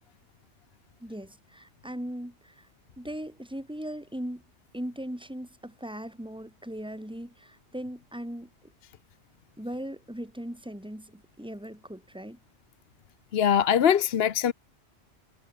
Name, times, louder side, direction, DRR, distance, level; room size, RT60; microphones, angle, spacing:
voice 1, 1.0-2.7 3.0-4.4 4.7-8.5 9.6-12.4, equal, 5° right, 4.5 m, -38 dB
voice 2, 13.3-14.5, left 8 dB, 65° left, 1.0 m, -22 dB
omnidirectional pair, 1.1 m